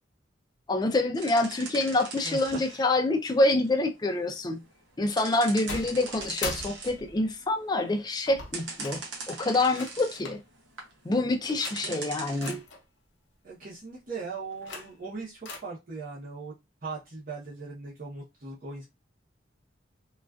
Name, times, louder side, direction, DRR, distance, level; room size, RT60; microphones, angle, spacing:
voice 1, 0.7-4.6 5.0-9.0 9.3-10.4 11.0-12.6, left 2 dB, 20° left, 0.4 m, -26 dB
sound 1, 1.2-3.0 3.3-4.6 5.2-7.1 7.4-8.0 8.5-10.2 10.6-10.9 11.7-12.5, right 4 dB, 85° right, 0.7 m, -40 dB
voice 2, 2.2-2.6 11.8-12.0 13.4-18.8, right 4 dB, 50° right, 0.7 m, -39 dB
sound 2, 5.7-7.3 8.3-9.0 9.8-10.4 11.4-11.8 12.4-12.8 14.4-15.1 15.5-15.6, left 3 dB, 90° left, 0.7 m, -40 dB
2.4 x 2.3 x 2.3 m
head